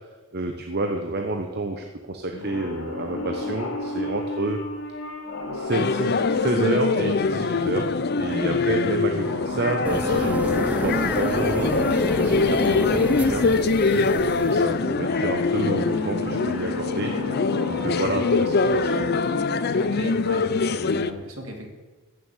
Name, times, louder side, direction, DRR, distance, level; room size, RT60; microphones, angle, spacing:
voice 1, 0.3-4.6 5.5-17.1 17.7-19.2, right 2 dB, 45° right, 4 dB, 1.0 m, -29 dB
sound 1, 2.3-8.0 9.1-12.1 14.9-20.1 20.4-20.5, left 3 dB, 60° left, 2.4 m, -31 dB
sound 2, 5.7-21.1, left 4 dB, 45° left, 0.5 m, -23 dB
sound 3, 9.8-14.6, right 1 dB, 5° right, 0.5 m, -30 dB
voice 2, 19.8-21.7, right 1 dB, 60° right, 2 dB, 2.7 m, -37 dB
15.5 x 6.7 x 7.3 m, 1.3 s
head